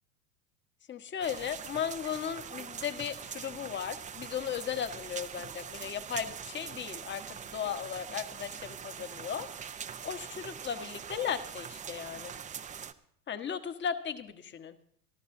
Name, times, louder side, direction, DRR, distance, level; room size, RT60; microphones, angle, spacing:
voice 1, 0.9-12.3 13.3-14.7, left 8 dB, 25° left, 9 dB, 1.3 m, -36 dB
sound 1, 1.2-12.9, right 7 dB, 15° right, 0.7 m, -43 dB
25.0 x 13.5 x 2.7 m, 0.67 s
hypercardioid pair, 95°, 45 cm